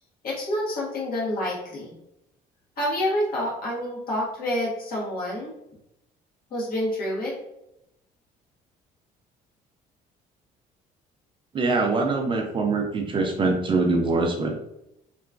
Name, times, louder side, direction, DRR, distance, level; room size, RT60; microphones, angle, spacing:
voice 1, 0.2-1.9 2.8-5.5 6.5-7.3, left 1 dB, 60° left, -4 dB, 1.2 m, -28 dB
voice 2, 11.5-14.5, right 3 dB, 30° right, 3 dB, 0.4 m, -23 dB
2.9 x 2.3 x 2.4 m, 0.83 s
cardioid pair, 110°, 17 cm